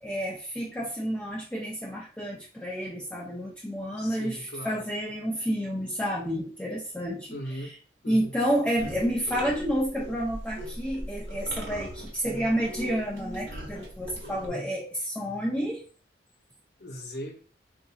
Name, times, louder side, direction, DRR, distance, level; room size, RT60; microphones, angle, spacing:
voice 1, 0.0-7.4 8.1-15.8, equal, 5° left, -4 dB, 0.4 m, -30 dB
voice 2, 4.0-4.8 7.3-7.7 8.0-8.3 14.5-14.7 16.8-17.4, equal, 60° left, 2 dB, 0.8 m, -38 dB
sound 1, 8.8-14.5, equal, 75° right, 1.0 m, -40 dB
4.1 x 2.5 x 2.3 m, 0.37 s
head